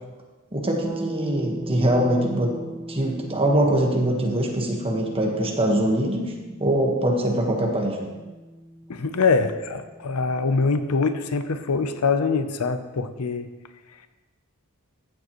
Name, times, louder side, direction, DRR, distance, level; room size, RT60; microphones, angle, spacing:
voice 1, 0.5-2.5 2.9-6.3 6.6-8.0, right 1 dB, 25° right, 0 dB, 1.4 m, -23 dB
sound 1, 0.8-10.6, right 1 dB, 10° right, 0.7 m, -39 dB
voice 2, 8.9-13.5, left 4 dB, 90° left, 10 dB, 0.7 m, -24 dB
14.0 x 7.4 x 3.1 m, 1.2 s
head